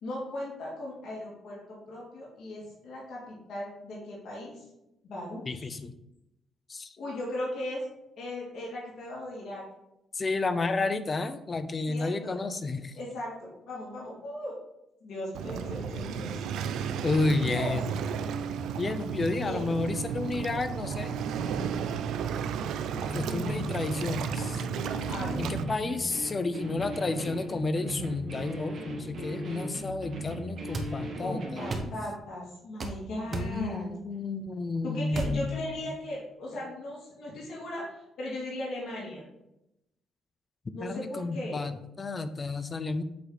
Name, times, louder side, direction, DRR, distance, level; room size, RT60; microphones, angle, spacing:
voice 1, 0.0-4.6 5.0-5.8 7.0-7.8 8.2-9.6 11.9-12.4 12.9-14.5 15.0-16.3 17.4-17.7 19.3-19.7 23.2-23.5 25.1-25.4 31.2-33.9 34.8-39.3 40.7-41.7, left 1 dB, 70° left, -5 dB, 2.4 m, -37 dB
voice 2, 5.5-5.9 6.7-7.0 10.1-12.9 17.0-17.8 18.8-21.1 23.1-24.6 25.4-31.7 33.3-35.6 40.8-43.0, left 3 dB, 35° left, 11 dB, 0.5 m, -31 dB
Waves surf, 15.3-25.6, right 7 dB, 85° right, 0.4 m, -33 dB
sound 1, 23.1-31.9, equal, 65° right, 1.6 m, -38 dB
sound 2, 30.7-30.9 31.7-31.9 32.8-33.0 33.3-33.5 35.1-35.4, right 3 dB, 45° right, 0.9 m, -32 dB
8.3 x 3.1 x 4.0 m, 0.87 s
cardioid pair, 90°, 0 cm